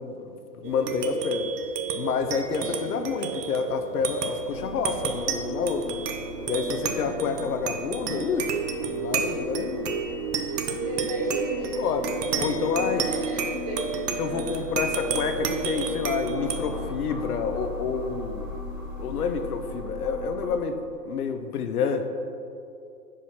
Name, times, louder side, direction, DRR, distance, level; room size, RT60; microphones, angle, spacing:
voice 1, 0.0-1.5 2.0-6.0 6.5-8.5 8.8-9.9 11.8-12.1 12.4-13.1 14.2-18.5 19.0-20.8 21.1-22.1, left 5 dB, 70° left, 7 dB, 0.7 m, -28 dB
sound 1, 0.6-19.5, right 6 dB, 80° right, 0.8 m, -31 dB
sound 2, 4.5-20.6, left 3 dB, ahead, 0.6 m, -39 dB
voice 2, 7.0-7.6 10.8-11.7 12.1-12.4 13.0-13.9 14.2-14.6, right 2 dB, 25° right, -3 dB, 0.9 m, -35 dB
5.0 x 4.2 x 5.6 m, 2.6 s
hypercardioid pair, 165°, 48 cm